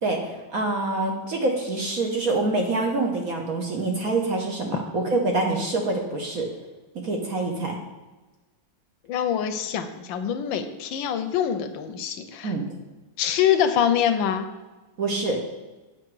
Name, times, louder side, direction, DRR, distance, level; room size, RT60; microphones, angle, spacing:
voice 1, 0.0-6.5 7.0-7.7 12.4-12.6 15.0-15.4, right 2 dB, 55° right, 1 dB, 1.1 m, -26 dB
voice 2, 9.1-12.5 13.2-14.5, left 9 dB, 75° left, 9 dB, 1.2 m, -24 dB
7.8 x 5.7 x 4.6 m, 1.2 s
omnidirectional pair, 2.3 m